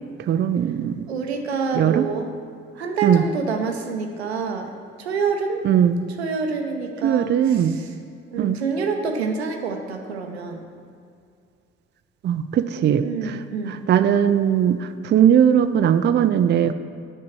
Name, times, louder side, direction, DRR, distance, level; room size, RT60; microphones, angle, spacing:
voice 1, 0.3-1.1 1.7-2.1 3.0-3.2 5.6-6.0 7.0-7.8 8.4-8.6 12.2-13.1 13.9-16.7, right 9 dB, 35° right, 10 dB, 0.5 m, -19 dB
voice 2, 1.1-2.3 2.7-4.7 5.0-5.6 6.1-7.9 8.3-10.7 13.0-13.8, right 5 dB, 85° right, 4 dB, 0.7 m, -27 dB
6.6 x 5.4 x 7.1 m, 2.3 s
figure-of-eight pair, 45°, 31 cm